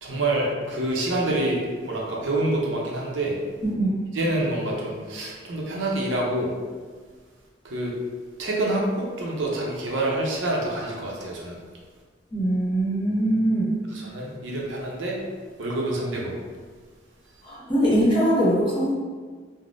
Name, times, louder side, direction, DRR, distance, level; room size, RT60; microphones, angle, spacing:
voice 1, 0.0-3.4 4.1-6.5 7.6-7.9 8.4-11.6 13.9-15.2 15.6-16.3, right 1 dB, 85° right, -2 dB, 0.6 m, -27 dB
voice 2, 3.6-3.9 12.3-13.7 17.4-18.9, right 1 dB, 25° left, -10 dB, 1.3 m, -22 dB
3.4 x 2.1 x 2.5 m, 1.5 s
head